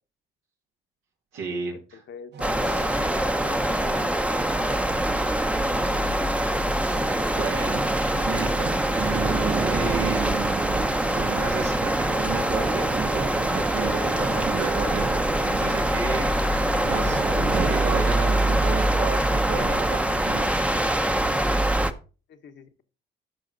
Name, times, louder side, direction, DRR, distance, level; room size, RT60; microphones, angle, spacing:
voice 1, 1.3-2.0 7.3-17.2 17.5-20.6, right 5 dB, 90° right, -2 dB, 2.2 m, -32 dB
voice 2, 1.9-4.4 22.3-22.8, left 6 dB, 65° left, 7 dB, 1.2 m, -45 dB
sound 1, 2.3-21.4, right 7 dB, 60° right, 0.9 m, -42 dB
sound 2, 2.4-21.9, right 1 dB, 5° right, 0.8 m, -24 dB
sound 3, 7.0-18.8, right 6 dB, 30° right, 0.3 m, -34 dB
13.0 x 4.9 x 4.0 m, 0.35 s
cardioid pair, 90°, 20 cm